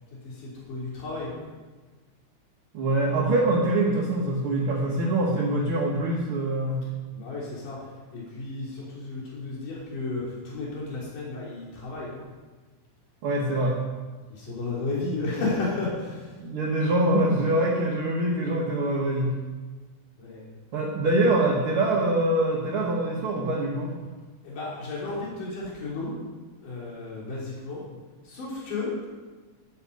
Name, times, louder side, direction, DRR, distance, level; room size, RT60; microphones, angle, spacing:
voice 1, 0.2-1.4 7.1-7.8 8.1-12.3 14.3-16.3 20.2-20.4 24.4-26.1 26.6-27.8 28.3-28.9, left 3 dB, 90° left, -5 dB, 5.1 m, -33 dB
voice 2, 2.7-6.8 13.2-13.8 16.4-19.4 20.7-23.9, right 1 dB, 50° right, -3 dB, 2.4 m, -24 dB
13.0 x 12.5 x 5.5 m, 1.3 s
omnidirectional pair, 3.6 m